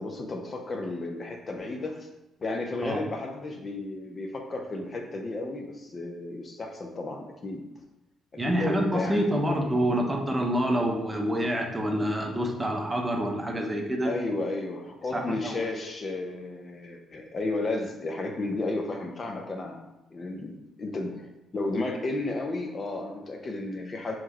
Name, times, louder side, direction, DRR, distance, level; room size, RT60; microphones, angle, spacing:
voice 1, 0.0-2.1 2.4-7.7 8.3-9.9 14.0-21.3 21.5-24.2, left 2 dB, 40° left, 3 dB, 0.6 m, -33 dB
voice 2, 8.4-14.1 15.1-15.6, equal, 15° right, 1 dB, 0.7 m, -27 dB
4.6 x 3.0 x 3.0 m, 0.93 s
cardioid pair, 90°, 0 cm